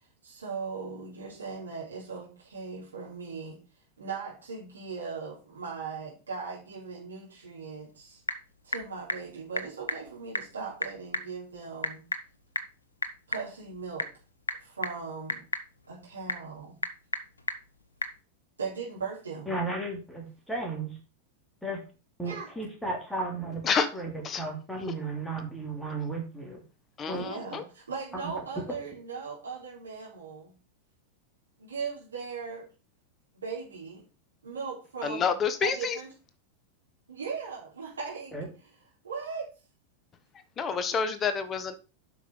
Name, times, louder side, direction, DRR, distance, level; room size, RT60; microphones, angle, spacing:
voice 1, 0.2-3.6 4.0-8.2 8.6-12.0 13.3-14.1 14.6-15.4 15.9-16.8 18.6-19.5 22.2-22.5 27.1-30.5 31.6-32.7 33.3-34.0 34.4-35.3 35.6-36.1 37.1-38.3 39.0-39.5, right 5 dB, 75° right, -5 dB, 3.3 m, -38 dB
Typing / Telephone, 7.7-18.2, left 3 dB, 75° left, 0.9 m, -37 dB
voice 2, 19.5-21.0 21.6-21.8 22.2-23.6 23.9-26.6 27.1-27.3 28.2-28.3 28.7-28.8 38.3-38.5, right 2 dB, 5° left, 1 dB, 3.1 m, -34 dB
voice 3, 27.0-27.6 35.0-36.0 40.6-41.7, left 6 dB, 25° left, 11 dB, 1.2 m, -28 dB
8.1 x 5.9 x 5.4 m, 0.33 s
figure-of-eight pair, 90°, 0 cm